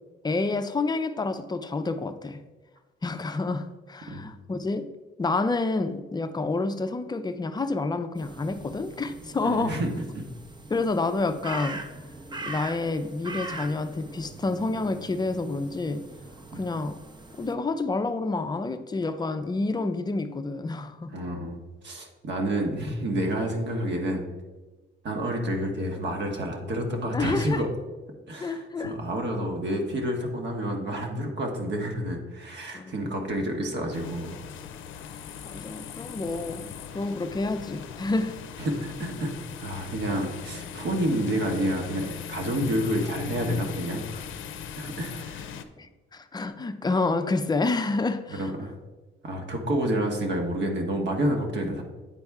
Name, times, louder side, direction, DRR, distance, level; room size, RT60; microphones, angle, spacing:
voice 1, 0.2-2.4 3.0-4.9 5.2-9.8 10.7-11.9 12.5-16.0 16.5-17.0 17.4-21.1 27.1-27.6 28.4-29.0 32.7-33.2 35.4-38.4 45.8-48.5, left 3 dB, 20° left, 0.4 m, -29 dB
sound 1, 8.1-17.5, right 2 dB, 20° right, 0.6 m, -41 dB
voice 2, 9.4-9.9 10.1-10.2 16.5-16.6 21.1-21.6 21.8-24.2 25.0-27.7 28.3-34.4 38.6-39.3 39.6-44.2 44.8-45.5 48.3-48.7 49.2-51.8, right 1 dB, 60° right, 1.3 m, -29 dB
sound 2, 33.9-45.6, left 7 dB, 80° left, 0.5 m, -39 dB
8.9 x 4.3 x 3.5 m
cardioid pair, 95°, 20 cm